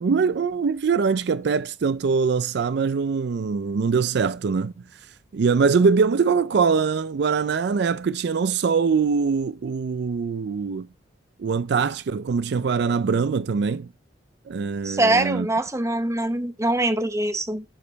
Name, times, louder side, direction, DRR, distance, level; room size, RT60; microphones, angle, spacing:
voice 1, 0.0-4.7 5.3-10.9 11.4-13.9 14.5-15.5, right 5 dB, 65° right, 0.4 m, -23 dB
voice 2, 14.8-17.6, right 1 dB, 15° right, 0.8 m, -23 dB
11.5 x 5.2 x 4.0 m
head